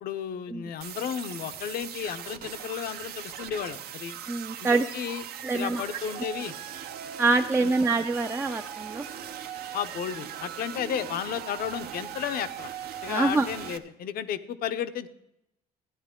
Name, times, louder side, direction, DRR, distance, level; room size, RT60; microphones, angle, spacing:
voice 1, 0.0-4.2 4.6-5.2 5.5-6.5 7.6-7.7 9.7-12.7 13.0-15.1, left 9 dB, 65° left, 11 dB, 0.7 m, -33 dB
sound 1, 0.8-13.8, right 9 dB, 65° right, 0.8 m, -39 dB
voice 2, 4.3-4.8 5.4-5.8 7.2-9.1 13.1-13.5, right 3 dB, 15° right, 6 dB, 0.4 m, -25 dB
13.5 x 10.0 x 3.7 m, 0.85 s
cardioid pair, 110°, 17 cm